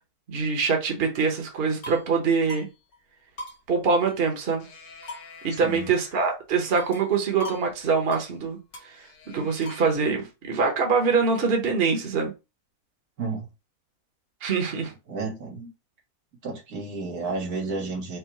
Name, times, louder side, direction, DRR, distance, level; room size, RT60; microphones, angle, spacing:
voice 1, 0.3-2.7 3.7-4.7 5.4-8.6 8.8-12.3 14.4-14.9, right 5 dB, 45° right, 1.2 m, -24 dB
sound 1, 1.5-2.1 2.5-2.7 2.9-3.0 3.4-4.3 4.6-6.3 6.8-7.1 7.4-7.7 7.9-8.3 8.7-9.9, left 1 dB, 70° left, 1.5 m, -42 dB
voice 2, 5.5-5.9 13.2-13.5 15.1-15.7 16.4-18.2, right 3 dB, 80° right, 2.0 m, -31 dB
4.6 x 2.3 x 4.5 m
omnidirectional pair, 1.6 m